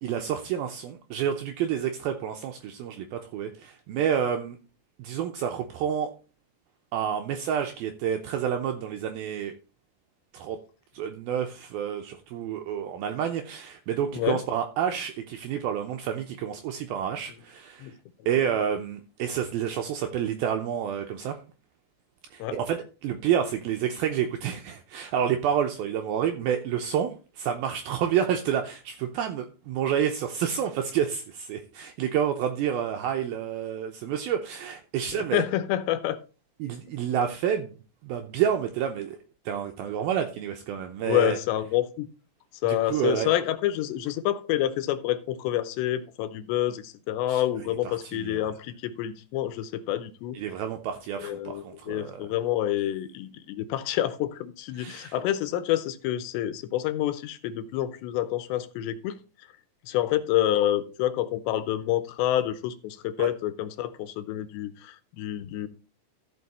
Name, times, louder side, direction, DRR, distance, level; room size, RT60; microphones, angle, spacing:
voice 1, 0.0-4.6 5.0-6.1 6.9-9.5 10.3-10.6 10.9-17.9 18.3-21.4 22.3-27.1 27.4-35.4 36.6-39.2 39.5-41.4 42.7-43.3 47.3-48.5 50.3-52.2 54.7-55.2 63.2-63.3, right 9 dB, 85° right, 5 dB, 2.2 m, -29 dB
voice 2, 35.2-36.2 41.0-42.1 42.6-50.4 51.2-59.2 59.9-65.7, left 12 dB, 80° left, 12 dB, 2.9 m, -28 dB
14.0 x 5.7 x 4.2 m, 0.35 s
omnidirectional pair, 5.1 m